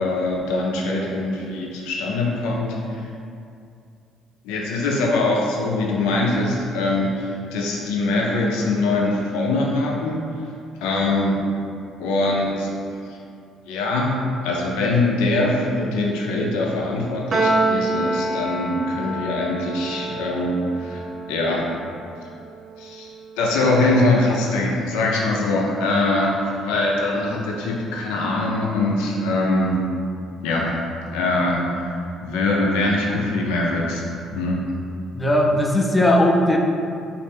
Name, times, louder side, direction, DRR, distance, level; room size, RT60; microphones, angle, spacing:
voice 1, 0.0-3.1 4.4-10.2 10.8-11.4 12.0-12.7 13.0-13.2 13.7-21.7 22.8-23.1 23.4-29.8 30.4-30.8 31.1-34.0 34.3-34.8, left 2 dB, 85° left, -2 dB, 0.5 m, -23 dB
Piano, 17.3-23.8, right 2 dB, 40° right, 0.4 m, -27 dB
voice 2, 35.1-36.6, left 1 dB, 20° left, 0 dB, 0.5 m, -18 dB
3.1 x 2.5 x 3.3 m, 2.5 s
supercardioid pair, 70°, 0 cm